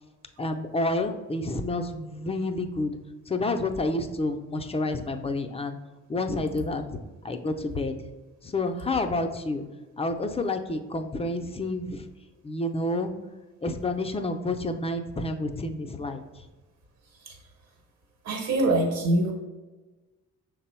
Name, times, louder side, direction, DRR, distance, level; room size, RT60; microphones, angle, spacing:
voice 1, 0.4-3.0 3.3-5.8 6.1-7.0 7.2-7.9 8.4-9.6 10.0-12.1 12.4-13.1 13.6-16.5, left 2 dB, 20° left, 6 dB, 0.4 m, -29 dB
voice 2, 17.0-17.5 18.2-19.3, right 2 dB, 60° right, 3 dB, 1.0 m, -25 dB
6.0 x 2.0 x 4.3 m, 1.2 s
cardioid pair, 90°, 30 cm